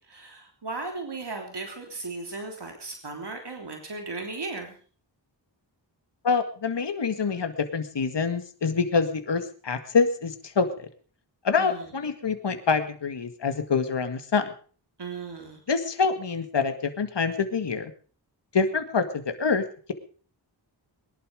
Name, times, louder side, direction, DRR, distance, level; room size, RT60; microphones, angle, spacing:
voice 1, 0.1-4.8 11.6-11.8 15.0-15.6, right 3 dB, 65° right, 3 dB, 3.3 m, -36 dB
voice 2, 6.2-10.9 11.4-14.5 15.7-17.9 18.5-19.9, left 5 dB, 70° left, 8 dB, 2.1 m, -26 dB
21.5 x 11.5 x 5.2 m, 0.43 s
cardioid pair, 50°, 44 cm